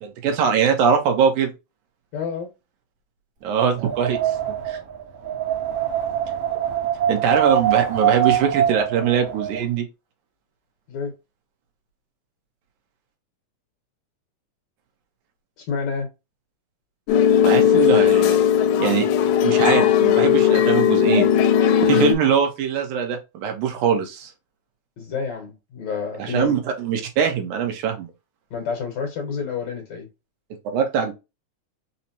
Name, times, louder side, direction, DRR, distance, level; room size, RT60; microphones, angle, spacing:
voice 1, 0.0-1.5 3.4-4.2 4.7-4.8 7.1-9.8 17.4-18.4 18.8-19.1 19.4-21.3 21.6-24.3 26.2-28.1 30.7-31.1, right 7 dB, 80° right, 2.3 m, -22 dB
voice 2, 2.1-2.5 10.9-11.1 15.6-16.1 25.0-26.6 28.5-30.1, left 6 dB, 70° left, 2.0 m, -29 dB
Wind, 3.6-9.6, right 10 dB, 60° right, 1.5 m, -24 dB
sound 1, 17.1-22.2, left 9 dB, 85° left, 2.1 m, -17 dB
5.6 x 2.0 x 2.7 m
omnidirectional pair, 3.5 m